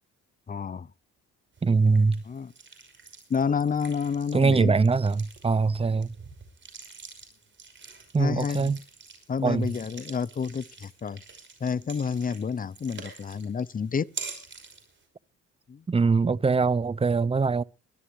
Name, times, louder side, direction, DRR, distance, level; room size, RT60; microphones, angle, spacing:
voice 1, 0.5-0.9 2.3-2.5 3.3-4.8 8.2-8.7 9.3-11.2 11.6-14.1 15.7-15.8, left 6 dB, 30° left, 0.6 m, -29 dB
sound 1, 1.5-15.0, right 5 dB, 40° right, 5.9 m, -46 dB
voice 2, 1.6-2.2 4.3-6.1 8.1-8.8 9.4-9.7 15.9-17.6, right 4 dB, 20° right, 0.6 m, -22 dB
22.5 x 12.5 x 3.3 m
cardioid pair, 90°, 30 cm